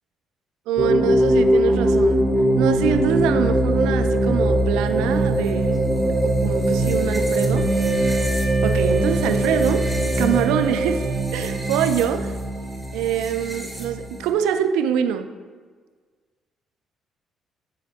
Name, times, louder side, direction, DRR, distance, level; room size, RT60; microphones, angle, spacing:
voice 1, 0.7-2.3 2.6-5.8 6.2-7.7 8.6-9.9 10.2-11.0 11.3-12.3 12.9-15.3, right 9 dB, 85° right, 9 dB, 0.4 m, -24 dB
sound 1, 0.8-14.3, right 1 dB, 10° left, 1.7 m, -21 dB
Wind instrument woodwind instrument, 7.5-11.7, right 2 dB, 10° right, 1.4 m, -36 dB
8.9 x 4.4 x 3.5 m, 1.5 s
supercardioid pair, 65°, 0 cm